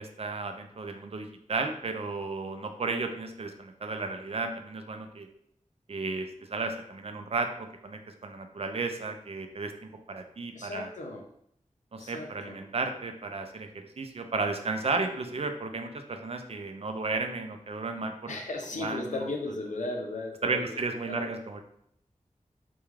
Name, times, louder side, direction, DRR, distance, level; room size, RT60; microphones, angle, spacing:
voice 1, 0.0-5.3 5.9-10.9 11.9-18.4 18.8-19.2 20.4-21.6, right 3 dB, 50° right, 6 dB, 0.4 m, -34 dB
voice 2, 10.5-11.3 12.0-12.6 18.3-20.6 21.1-21.3, left 2 dB, 70° left, 1 dB, 0.4 m, -36 dB
2.3 x 2.2 x 3.1 m, 0.71 s
wide cardioid pair, 65°, 13 cm